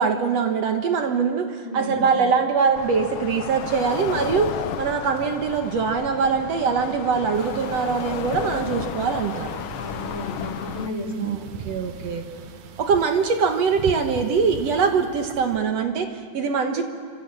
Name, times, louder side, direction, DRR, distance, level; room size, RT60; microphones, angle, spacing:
voice 1, 0.0-9.6 11.2-11.4 11.6-12.2 12.8-16.8, right 5 dB, 65° right, 5 dB, 2.3 m, -23 dB
voice 2, 1.6-2.0 9.8-11.5, left 2 dB, 45° left, -1 dB, 4.3 m, -32 dB
sound 1, 2.8-10.9, left 9 dB, 75° left, 1.2 m, -33 dB
sound 2, 7.3-15.6, right 6 dB, 80° right, 2.7 m, -40 dB
27.0 x 26.0 x 7.7 m, 2.1 s
omnidirectional pair, 3.4 m